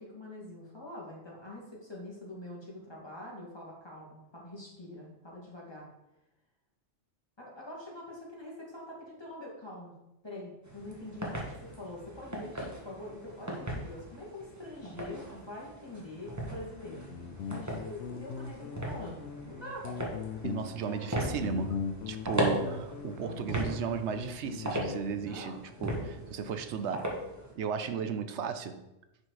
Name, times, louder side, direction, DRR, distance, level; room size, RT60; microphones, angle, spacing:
voice 1, 0.0-5.9 7.4-9.9 10.2-17.1 17.4-19.9 20.8-21.4 22.6-22.8 23.6-23.8 25.2-26.3, left 1 dB, 25° left, -4 dB, 2.2 m, -45 dB
sound 1, 10.6-27.5, equal, 15° right, 1.6 m, -38 dB
Guitar, 16.8-25.3, left 6 dB, 75° left, 0.9 m, -40 dB
voice 2, 20.4-22.8 23.0-27.2 27.6-28.9, right 6 dB, 80° right, 9 dB, 1.0 m, -35 dB
9.7 x 4.4 x 4.8 m, 0.92 s
omnidirectional pair, 1.1 m